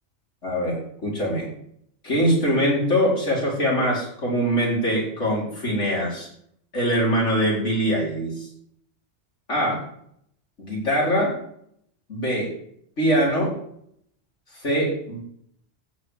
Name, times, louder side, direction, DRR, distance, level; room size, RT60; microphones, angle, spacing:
voice 1, 0.4-1.5 2.0-6.3 6.7-8.5 9.5-9.8 10.6-11.3 12.1-12.5 13.0-13.5 14.5-15.2, equal, 75° left, -5 dB, 4.9 m, -23 dB
15.0 x 5.2 x 8.1 m, 0.69 s
omnidirectional pair, 1.2 m